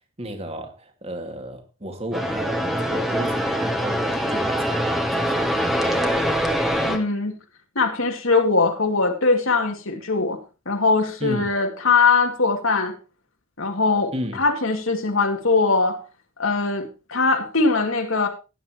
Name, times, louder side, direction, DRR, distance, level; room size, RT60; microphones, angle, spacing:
voice 1, 0.2-6.3 11.2-11.5 14.1-14.4, equal, 30° right, 2.3 m, -33 dB
sound 1, 2.1-7.0, equal, ahead, 1.6 m, -23 dB
voice 2, 6.8-7.4 7.8-10.4 10.7-12.9 13.6-16.0 16.4-18.3, left 4 dB, 65° left, 2.5 m, -21 dB
16.0 x 9.7 x 3.1 m
head